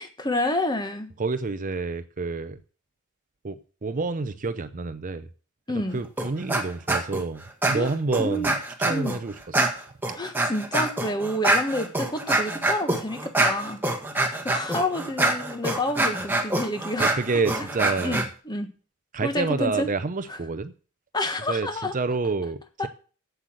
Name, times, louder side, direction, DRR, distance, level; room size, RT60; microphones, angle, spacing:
voice 1, 0.0-1.1 5.7-6.0 7.7-7.9 8.2-8.5 8.9-9.2 10.2-13.8 14.4-17.1 18.0-18.7 19.2-19.9 21.1-21.9 22.8-22.9, left 1 dB, 20° left, 7 dB, 1.4 m, -28 dB
voice 2, 1.2-2.6 3.4-5.3 5.7-9.6 17.0-18.2 19.1-20.7 21.5-22.9, right 3 dB, 35° right, 12 dB, 0.6 m, -28 dB
sound 1, 6.2-6.6 6.9-7.2 7.6-9.2 9.5-18.2, right 2 dB, 10° right, 1.7 m, -25 dB
8.0 x 7.9 x 7.8 m, 0.38 s
head